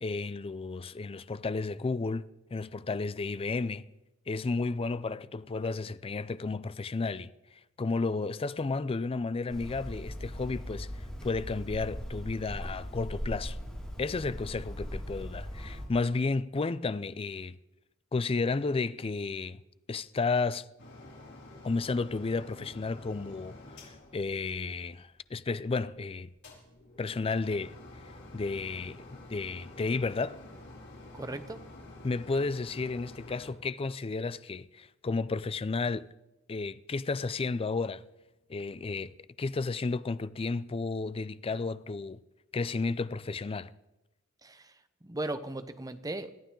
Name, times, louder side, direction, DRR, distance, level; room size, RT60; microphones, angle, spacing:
voice 1, 0.0-3.9 4.3-7.3 7.8-13.6 14.0-17.6 18.1-19.6 19.9-20.7 21.6-23.6 23.8-26.3 27.0-27.7 28.3-30.4 32.0-36.1 36.5-38.0 38.5-39.1 39.4-42.2 42.5-43.7, left 3 dB, 25° left, 0.4 m, -32 dB
Hammer, 9.5-15.8, equal, 5° left, 5.1 m, -39 dB
sound 1, 20.8-25.1 26.3-33.5, left 2 dB, 60° left, 5.3 m, -49 dB
voice 2, 31.1-31.6 44.4-44.7 45.0-46.4, right 2 dB, 20° right, 0.9 m, -37 dB
21.5 x 14.5 x 3.8 m
head